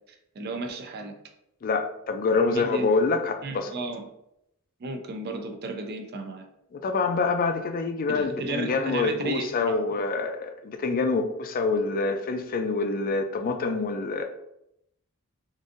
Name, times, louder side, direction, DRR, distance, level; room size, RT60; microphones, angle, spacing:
voice 1, 0.4-1.1 2.3-2.9 3.4-4.1 4.8-6.4 8.1-10.0, right 2 dB, 45° right, 5 dB, 0.4 m, -33 dB
voice 2, 1.6-3.8 6.7-14.2, left 4 dB, 40° left, 6 dB, 0.3 m, -26 dB
3.8 x 2.6 x 2.4 m, 0.80 s
head